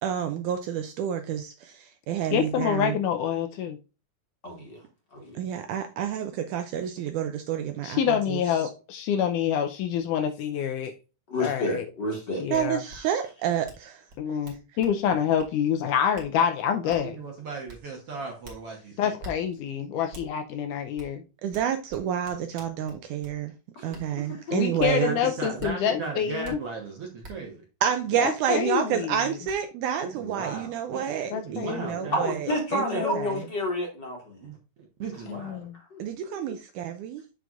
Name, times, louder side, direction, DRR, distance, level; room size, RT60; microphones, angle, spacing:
voice 1, 0.0-3.0 5.4-8.4 12.5-14.0 21.4-23.5 23.8-25.2 27.8-32.4 32.7-33.4 36.0-37.2, right 9 dB, 80° right, 1.9 m, -29 dB
voice 2, 2.3-3.8 7.8-10.9 11.4-11.9 12.4-12.8 14.2-17.2 19.0-21.2 24.5-26.6 28.2-29.4 31.3-31.9 32.8-33.4 35.3-35.7, left 8 dB, 80° left, 2.0 m, -27 dB
voice 3, 4.4-4.8 5.1-5.4 11.3-12.5 12.9-13.0 23.8-24.6 32.1-34.5 35.9-36.0 36.3-36.6, left 1 dB, 40° left, 1.9 m, -30 dB
sound 1, 12.5-12.6 12.9-13.0 13.6-13.8 14.1-15.0 15.4-15.5 16.1-16.3 16.9-17.0 17.7-17.8 18.4-18.6 19.2-19.3 20.1-20.3 21.0-21.1 21.5-23.4 23.9-24.0 24.8-24.9 25.6-25.7 26.4-26.5 27.2-27.3 28.8-28.9 29.4-29.6, right 2 dB, 35° right, 2.3 m, -44 dB
voice 4, 16.8-19.2 24.9-27.6 30.0-31.0 31.3-32.4 34.4-35.7, right 4 dB, 55° right, 1.7 m, -37 dB
7.6 x 6.7 x 2.5 m
omnidirectional pair, 4.0 m